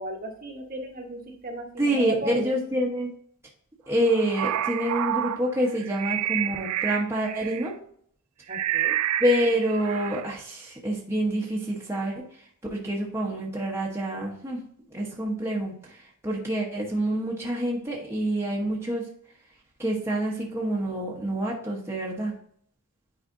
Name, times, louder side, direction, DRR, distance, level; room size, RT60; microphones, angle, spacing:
voice 1, 0.0-2.5 8.5-8.9, right 1 dB, 40° right, 1 dB, 1.2 m, -35 dB
voice 2, 1.8-3.1 3.9-7.7 9.2-12.2 12.7-14.6 14.9-19.0 19.8-22.3, right 1 dB, 10° right, -3 dB, 1.0 m, -27 dB
sound 1, 4.0-7.7 8.5-10.3, right 11 dB, 80° right, 0.4 m, -29 dB
9.1 x 4.9 x 2.6 m, 0.64 s
head